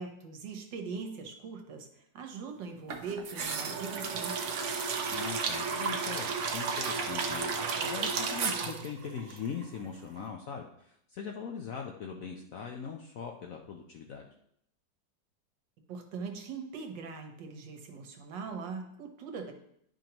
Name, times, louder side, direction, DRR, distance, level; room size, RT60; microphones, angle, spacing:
voice 1, 0.0-4.5 15.9-19.5, right 5 dB, 75° right, 4 dB, 1.6 m, -41 dB
sound 1, 2.9-9.9 10.2-10.3, right 5 dB, 60° right, 0.8 m, -33 dB
voice 2, 5.1-14.2, left 6 dB, 70° left, 2 dB, 0.8 m, -41 dB
10.5 x 5.2 x 2.9 m, 0.72 s
omnidirectional pair, 2.0 m